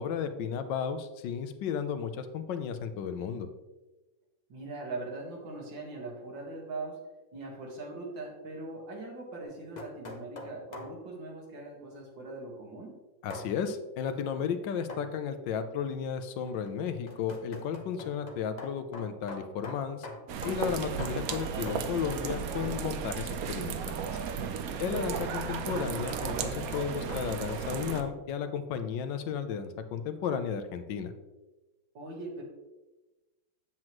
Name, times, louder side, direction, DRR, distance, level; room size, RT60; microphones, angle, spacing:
voice 1, 0.0-3.5 13.2-20.1 20.4-24.0 24.8-31.1, left 7 dB, 80° left, 9 dB, 1.4 m, -34 dB
voice 2, 4.5-7.0 7.3-12.9 24.6-25.0 31.9-32.4, right 2 dB, 90° right, -1 dB, 2.4 m, -41 dB
sound 1, 9.4-11.0 13.3-13.5 14.9-15.2 16.5-22.4 22.6-22.9 25.0-28.1, left 2 dB, 40° left, 0.6 m, -44 dB
sound 2, 20.3-28.0, right 7 dB, 65° right, 0.9 m, -34 dB
7.6 x 7.5 x 3.0 m, 1.1 s
omnidirectional pair, 2.0 m